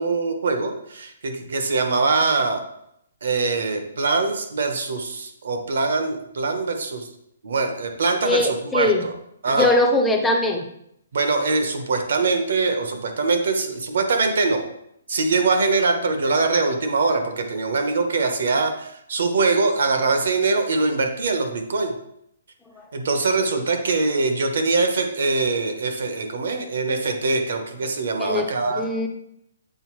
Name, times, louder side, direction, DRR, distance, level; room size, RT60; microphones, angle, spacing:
voice 1, 0.0-2.6 3.2-7.1 7.4-9.1 9.4-9.7 11.1-14.7 15.1-21.9 22.9-28.9, right 3 dB, 55° right, 5 dB, 0.9 m, -23 dB
voice 2, 8.2-9.0 9.5-10.6 28.2-29.1, left 2 dB, 5° left, 2 dB, 0.4 m, -21 dB
7.8 x 3.9 x 3.1 m, 0.75 s
hypercardioid pair, 175°, 0 cm